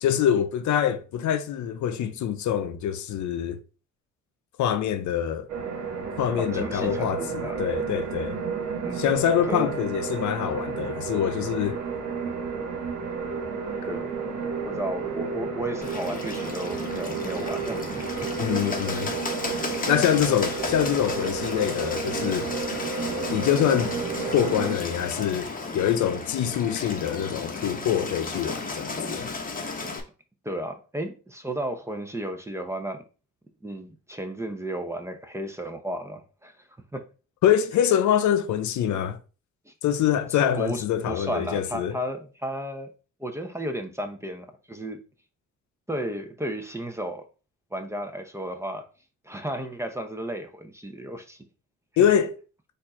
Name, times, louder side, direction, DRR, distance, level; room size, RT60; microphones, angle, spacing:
voice 1, 0.0-3.6 4.6-5.5 6.2-8.4 9.0-11.8 18.4-19.1 19.9-22.5 23.3-24.0 24.3-29.3 37.4-39.2 39.8-42.0 52.0-52.4, left 10 dB, 70° left, 0.6 m, -25 dB
sound 1, 5.5-24.8, right 5 dB, 70° right, 1.2 m, -32 dB
voice 2, 6.4-7.7 8.8-9.0 9.4-9.7 13.9-18.3 30.4-33.0 33.6-36.7 36.9-37.1 39.6-39.7 40.6-42.9 43.2-45.1 45.9-47.3 47.7-48.9 49.2-51.4 52.0-52.1, right 1 dB, 10° right, 0.7 m, -34 dB
Bird, 15.8-30.0, left 3 dB, 30° left, 1.0 m, -34 dB
4.4 x 2.7 x 4.2 m
cardioid pair, 90°, 30 cm